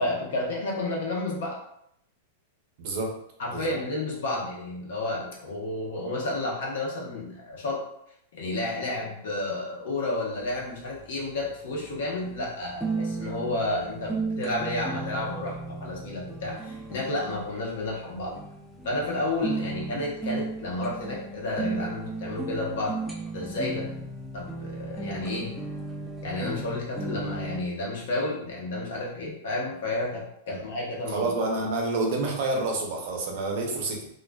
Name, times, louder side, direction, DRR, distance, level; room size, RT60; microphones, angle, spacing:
voice 1, 0.0-1.6 3.4-7.8 8.3-18.4 18.8-23.0 23.3-23.9 24.3-25.5 26.2-31.6, left 2 dB, 75° left, -3 dB, 0.8 m, -31 dB
voice 2, 2.8-3.2 3.5-3.7 30.5-30.6 31.1-34.1, right 2 dB, 55° right, 1 dB, 0.6 m, -28 dB
sound 1, 10.3-27.6, right 3 dB, ahead, 0.4 m, -35 dB
2.3 x 2.3 x 2.2 m, 0.74 s
hypercardioid pair, 135°, 0 cm